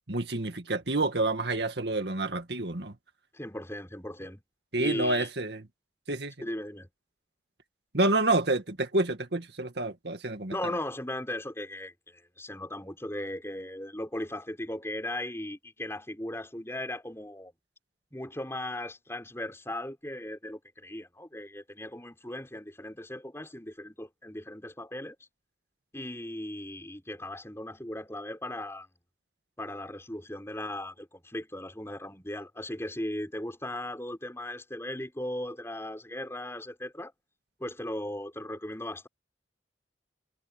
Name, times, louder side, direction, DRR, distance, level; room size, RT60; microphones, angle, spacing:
voice 1, 0.1-2.9 4.7-5.6 6.1-6.3 7.9-10.5, right 2 dB, 65° right, 2.0 m, -28 dB
voice 2, 3.3-4.4 4.8-5.3 6.4-6.9 10.5-17.5 18.1-25.2 25.9-28.9 29.6-37.1 37.6-39.1, left 1 dB, 15° left, 6.3 m, -37 dB
head